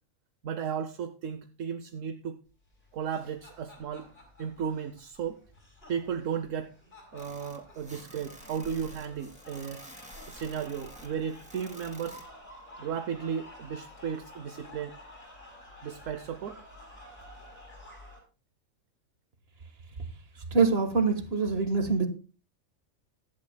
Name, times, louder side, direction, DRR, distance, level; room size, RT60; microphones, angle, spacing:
voice 1, 0.4-2.4 2.9-4.1 4.4-5.4 5.9-6.7 7.1-9.8 10.3-12.2 12.8-14.9 15.8-16.6, right 7 dB, 70° right, 1.1 m, -35 dB
sound 1, 2.7-18.2, left 1 dB, 45° left, 6.2 m, -51 dB
sound 2, 7.2-12.2, equal, 5° right, 3.0 m, -51 dB
voice 2, 20.5-22.1, right 4 dB, 50° right, 1.7 m, -24 dB
16.5 x 12.0 x 2.2 m
omnidirectional pair, 1.4 m